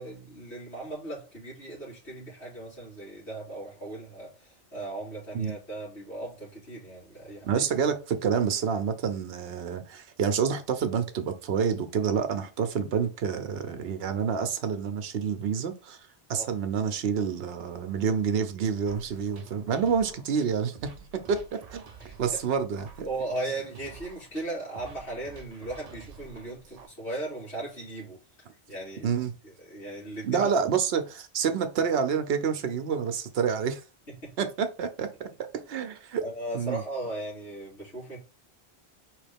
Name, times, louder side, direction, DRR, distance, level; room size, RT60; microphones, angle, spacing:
voice 1, 0.0-7.6 16.3-16.5 22.0-22.1 23.0-28.2 28.7-29.1 29.7-30.5 34.1-34.3 35.8-35.9 36.2-38.2, right 2 dB, 85° left, 3.0 m, -37 dB
voice 2, 7.4-16.0 16.3-21.8 22.2-23.1 29.0-29.3 30.2-33.8 34.4-35.3 35.7-36.2 36.5-36.8, right 6 dB, 65° right, 0.9 m, -28 dB
sound 1, 18.9-26.9, right 5 dB, 45° right, 0.6 m, -49 dB
4.5 x 3.2 x 3.5 m
omnidirectional pair, 1.1 m